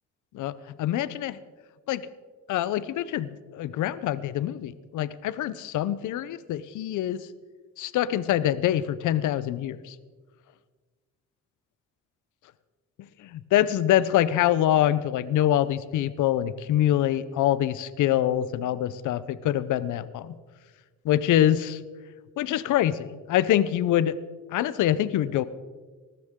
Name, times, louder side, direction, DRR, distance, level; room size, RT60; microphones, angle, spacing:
voice 1, 0.3-1.4 1.9-2.1 2.5-7.3 7.8-9.9 13.2-20.3 21.0-21.8 22.4-24.1 24.5-25.4, left 12 dB, 80° left, 16 dB, 0.7 m, -25 dB
19.0 x 14.5 x 3.7 m, 1.4 s
cardioid pair, 90°, 30 cm